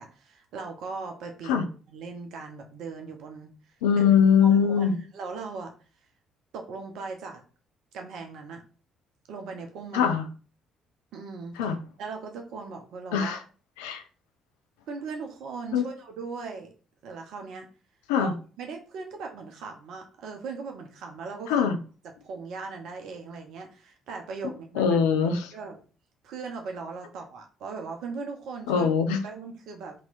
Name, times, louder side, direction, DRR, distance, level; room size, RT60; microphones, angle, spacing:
voice 1, 0.0-3.5 3.9-4.0 4.4-5.7 6.5-7.4 7.9-8.6 9.3-10.2 11.1-11.6 12.0-13.4 14.9-16.7 17.0-17.7 18.2-18.3 18.6-21.7 22.0-25.0 25.5-25.8 26.2-28.9 29.2-29.9, right 4 dB, 55° right, 3 dB, 0.7 m, -39 dB
voice 2, 3.8-5.0 9.9-10.2 11.6-11.8 13.1-13.4 13.8-14.0 15.7-15.8 18.1-18.3 21.5-21.8 24.8-25.5 28.7-29.2, left 7 dB, 70° left, 7 dB, 0.4 m, -22 dB
3.1 x 3.0 x 3.9 m, 0.37 s
figure-of-eight pair, 45°, 0 cm